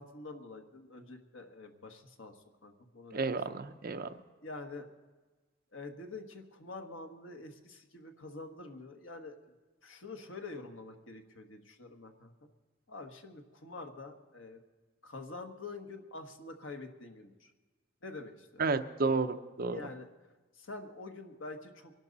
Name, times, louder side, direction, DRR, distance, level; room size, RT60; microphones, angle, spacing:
voice 1, 0.0-3.3 4.4-4.9 5.7-9.4 9.8-12.3 12.9-14.6 15.0-17.5 18.0-18.6 19.7-20.1 20.5-21.9, left 3 dB, 80° left, 4 dB, 1.5 m, -46 dB
voice 2, 3.1-4.1 18.6-19.8, right 4 dB, 50° right, 8 dB, 0.7 m, -31 dB
24.0 x 12.0 x 4.1 m, 1.3 s
head